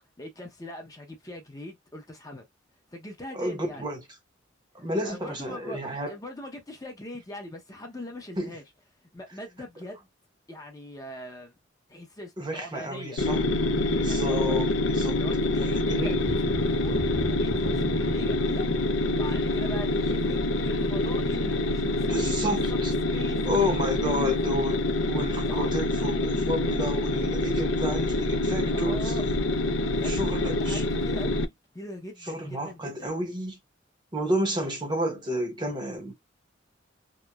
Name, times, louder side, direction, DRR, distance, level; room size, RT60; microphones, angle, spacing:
voice 1, 0.2-2.4 2.9-3.8 4.8-8.6 9.1-10.1 10.5-11.5 11.9-13.2 14.0-14.6 15.1-18.7 19.2-23.4 23.8-24.7 25.5-25.7 28.6-29.2 29.8-33.1, left 1 dB, 20° left, 0.6 m, -41 dB
voice 2, 3.3-4.0 4.7-6.2 8.4-8.6 12.4-13.4 14.0-15.2 15.9-16.2 22.1-22.9 23.4-24.8 25.1-29.2 30.0-30.8 32.2-33.6 34.1-36.1, equal, 25° right, 0.7 m, -30 dB
sound 1, 13.2-31.4, left 2 dB, 80° left, 0.4 m, -26 dB
sound 2, 16.1-21.6 22.0-22.1 22.6-22.7, equal, 55° left, 0.9 m, -37 dB
2.9 x 2.1 x 2.2 m
head